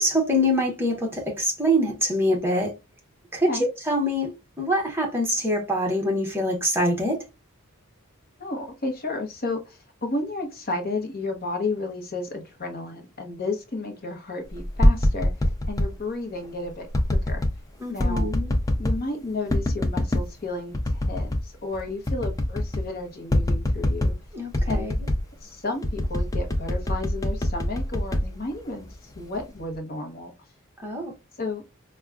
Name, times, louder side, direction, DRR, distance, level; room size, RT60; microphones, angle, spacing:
voice 1, 0.0-2.7 3.3-3.5 3.9-7.2 17.8-18.6 24.3-24.9 30.8-31.1, equal, 10° right, 0.9 m, -24 dB
voice 2, 8.4-15.3 15.7-17.4 17.9-18.3 18.8-24.2 24.7-25.0 25.4-30.3 31.4-31.6, left 2 dB, 45° left, 0.8 m, -32 dB
sound 1, 14.6-15.9 16.9-17.6 18.0-19.0 19.5-20.3 20.7-21.5 21.7-21.8 22.1-22.9 23.3-24.2 24.5-25.3 25.8-28.9 29.3-29.8, left 1 dB, 15° left, 0.4 m, -24 dB
4.7 x 2.2 x 2.2 m
head